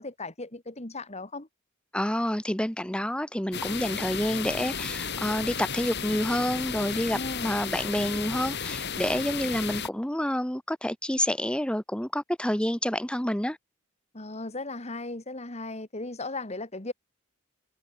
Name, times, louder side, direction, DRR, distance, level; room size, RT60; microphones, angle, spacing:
voice 1, 0.0-1.5 7.1-7.5 14.1-16.9, left 2 dB, 30° left, 2.1 m, -36 dB
voice 2, 1.9-13.6, left 1 dB, 5° left, 1.0 m, -28 dB
sound 1, 3.5-9.9, left 6 dB, 55° left, 6.3 m, -33 dB
head